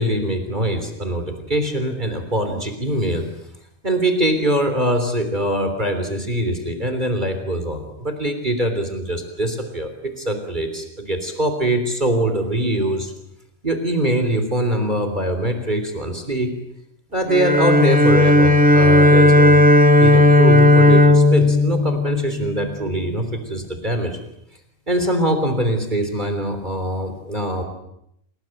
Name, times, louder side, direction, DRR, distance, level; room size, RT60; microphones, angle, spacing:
voice 1, 0.0-3.3 3.8-13.1 13.6-16.5 17.1-19.6 20.0-24.2 24.9-27.6, right 1 dB, 35° right, 7 dB, 3.6 m, -23 dB
Bowed string instrument, 17.3-22.7, left 2 dB, 5° right, 1.5 m, -13 dB
29.5 x 20.5 x 9.0 m, 0.77 s
omnidirectional pair, 1.3 m